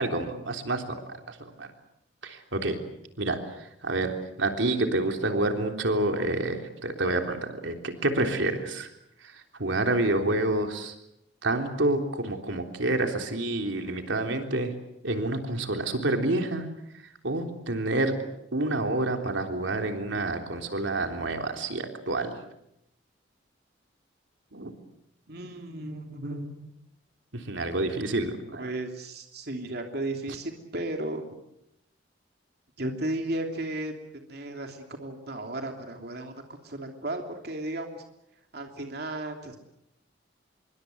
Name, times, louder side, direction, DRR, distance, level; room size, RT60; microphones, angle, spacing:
voice 1, 0.0-1.7 2.2-2.8 3.2-8.9 9.2-10.9 11.4-14.7 15.0-16.7 16.9-18.1 18.5-22.4 24.5-24.7 27.3-28.7, right 2 dB, 85° right, 4 dB, 3.6 m, -28 dB
voice 2, 25.3-26.7 28.6-31.2 32.8-33.9 34.3-38.0 38.5-39.6, right 1 dB, 55° right, 3 dB, 3.0 m, -34 dB
26.5 x 23.5 x 8.0 m, 0.80 s
head